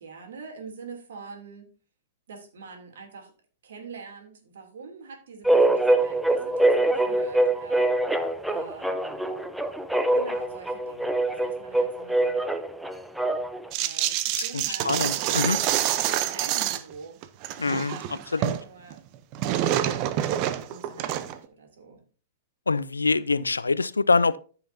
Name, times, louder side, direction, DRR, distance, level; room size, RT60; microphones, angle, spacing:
voice 1, 0.0-1.7 2.3-3.3 3.6-7.9 8.5-9.3 10.1-12.4 13.8-17.2 17.7-19.0 19.7-20.1 20.7-22.0, right 5 dB, 70° right, 3.0 m, -45 dB
sound 1, 5.4-13.7, right 1 dB, 5° right, 0.7 m, -24 dB
sound 2, 13.7-16.9 17.2-18.6 18.9-21.4, right 12 dB, 45° right, 0.7 m, -27 dB
voice 2, 14.3-15.6 17.6-18.0 18.3-18.6 22.7-24.4, left 4 dB, 90° left, 0.4 m, -25 dB
14.0 x 5.8 x 2.7 m
hypercardioid pair, 110°, 0 cm